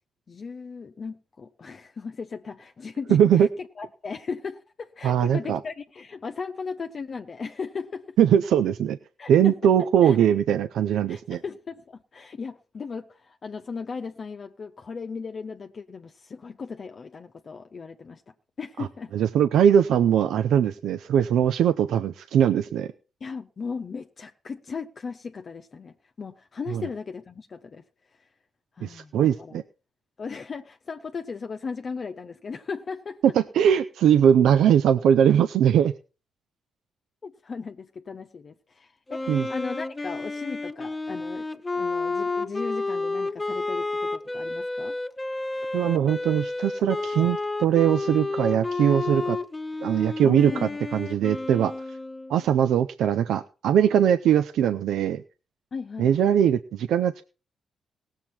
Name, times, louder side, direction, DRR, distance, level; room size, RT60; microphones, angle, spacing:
voice 1, 0.3-3.5 3.8-8.2 9.2-10.2 11.1-18.2 18.6-19.1 23.2-27.8 28.8-29.6 30.2-33.2 37.2-45.0 50.2-50.8 55.7-56.1, left 5 dB, 50° left, 0.8 m, -36 dB
voice 2, 3.1-3.5 5.0-5.6 8.2-9.0 9.3-11.4 18.8-18.9 19.1-22.9 26.7-26.8 28.8-29.6 33.3-35.9 39.3-39.5 45.7-49.4 49.8-50.5 50.9-51.7 52.3-55.2 56.0-57.2, right 9 dB, 75° right, 0.5 m, -21 dB
Wind instrument woodwind instrument, 39.1-52.5, left 3 dB, 25° left, 1.1 m, -31 dB
18.0 x 7.4 x 4.3 m
hypercardioid pair, 45°, 0 cm